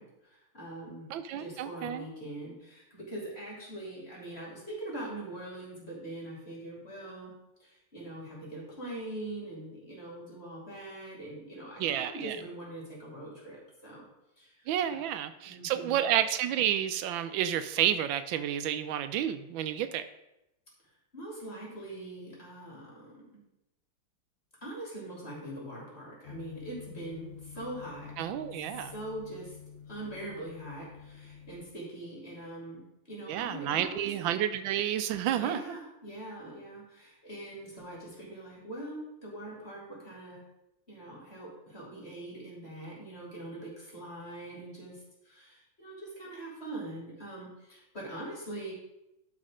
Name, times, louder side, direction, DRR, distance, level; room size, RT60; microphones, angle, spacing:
voice 1, 0.0-7.3 7.6-14.0 14.4-15.1 15.4-16.1 21.1-23.4 24.6-28.1 28.7-29.6 29.9-32.8 33.1-34.1 35.3-40.4 40.9-48.7, right 1 dB, 30° left, -4 dB, 3.2 m, -42 dB
voice 2, 1.1-2.1 11.8-12.4 14.7-20.0 28.2-28.9 33.3-35.6, right 10 dB, 85° right, 11 dB, 1.3 m, -30 dB
sound 1, 26.2-31.6, left 8 dB, 45° left, 1.0 m, -49 dB
11.5 x 4.2 x 5.0 m, 0.89 s
omnidirectional pair, 2.1 m